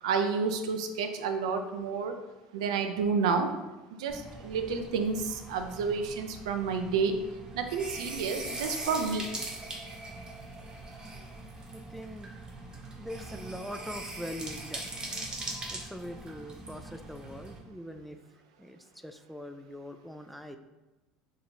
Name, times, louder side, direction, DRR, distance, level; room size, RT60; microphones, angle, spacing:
voice 1, 0.0-2.2 2.5-3.5 3.9-7.2 7.5-9.3, right 5 dB, 85° right, 6 dB, 0.4 m, -30 dB
sound 1, 4.1-17.6, right 2 dB, 25° right, 0.8 m, -41 dB
voice 2, 11.7-12.3 12.9-14.9 15.7-18.2 18.6-20.6, equal, ahead, 7 dB, 0.3 m, -42 dB
2.9 x 2.7 x 4.2 m, 1.1 s
hypercardioid pair, 85°, 3 cm